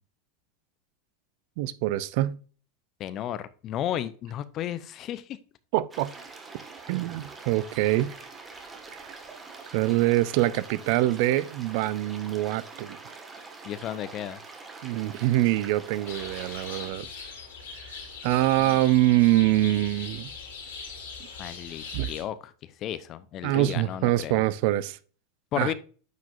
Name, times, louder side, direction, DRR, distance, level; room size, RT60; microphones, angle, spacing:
voice 1, 1.6-2.4 5.7-6.1 6.9-8.1 8.9-9.1 9.7-13.0 14.8-17.1 17.8-20.3 21.9-22.1 23.4-25.0 25.6-25.7, right 15 dB, 60° right, 0.5 m, -24 dB
voice 2, 3.0-5.4 13.6-14.4 18.6-18.8 21.4-24.4 25.5-25.7, left 11 dB, 45° left, 0.6 m, -33 dB
sound 1, 5.9-16.9, right 4 dB, 20° right, 1.6 m, -45 dB
sound 2, 16.1-22.2, left 5 dB, 75° left, 3.9 m, -41 dB
9.2 x 5.0 x 2.5 m
hypercardioid pair, 90°, 0 cm